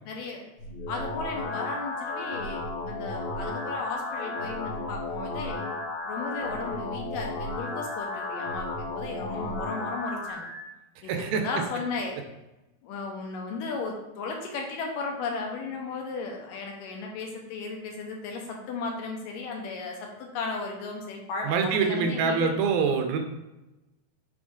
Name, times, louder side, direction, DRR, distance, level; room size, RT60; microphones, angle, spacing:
voice 1, 0.1-0.4 0.9-5.7 6.1-10.5 11.0-12.2 12.8-22.5, left 4 dB, 75° left, 1 dB, 2.3 m, -35 dB
sound 1, 0.6-10.6, left 2 dB, 55° left, 2.8 m, -34 dB
voice 2, 11.0-11.5 21.4-23.2, right 5 dB, 80° right, 5 dB, 2.3 m, -25 dB
6.2 x 4.3 x 3.6 m, 0.98 s
omnidirectional pair, 4.2 m